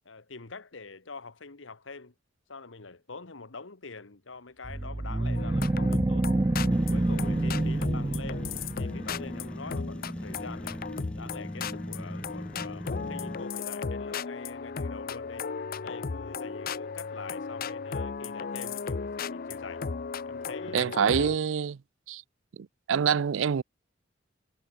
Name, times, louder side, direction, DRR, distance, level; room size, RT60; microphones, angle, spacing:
voice 1, 0.0-2.1 2.5-6.3 6.9-10.8 11.2-15.5 15.8-19.8 20.2-21.2, left 4 dB, 75° left, 1.4 m, -45 dB
sound 1, 4.6-9.0, right 2 dB, 20° right, 0.4 m, -27 dB
sound 2, 5.4-21.4, left 5 dB, 50° left, 0.6 m, -36 dB
sound 3, 6.7-13.5, equal, 5° left, 0.8 m, -39 dB
voice 2, 20.7-21.8 22.1-22.2 22.6-23.6, right 7 dB, 80° right, 0.4 m, -26 dB
head